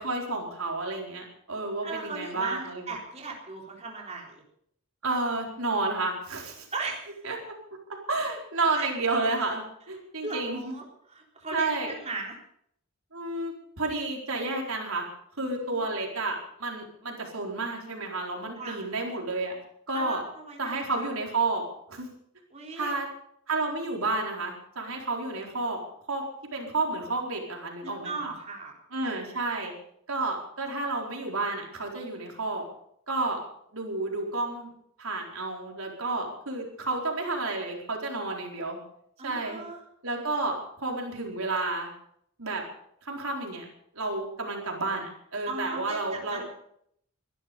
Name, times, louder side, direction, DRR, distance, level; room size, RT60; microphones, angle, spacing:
voice 1, 0.0-2.8 5.0-6.7 7.2-7.5 8.1-10.7 11.5-11.9 13.1-15.0 15.4-19.6 19.9-20.2 20.6-21.6 21.9-22.1 22.8-23.1 23.5-25.8 26.1-26.2 26.5-28.3 28.9-29.7 30.1-32.6 33.1-33.4 33.7-34.7 35.0-38.8 39.2-39.6 40.0-41.9 42.4-42.6 43.0-43.7 43.9-46.4, right 3 dB, 75° right, 1 dB, 4.4 m, -31 dB
voice 2, 1.8-4.4 6.7-7.2 8.7-8.9 10.2-12.4 15.4-15.9 18.6-18.8 19.9-21.1 22.5-23.0 27.8-28.8 39.2-39.8 45.5-46.4, right 3 dB, 30° right, 0 dB, 3.8 m, -38 dB
21.5 x 12.0 x 5.4 m, 0.69 s
head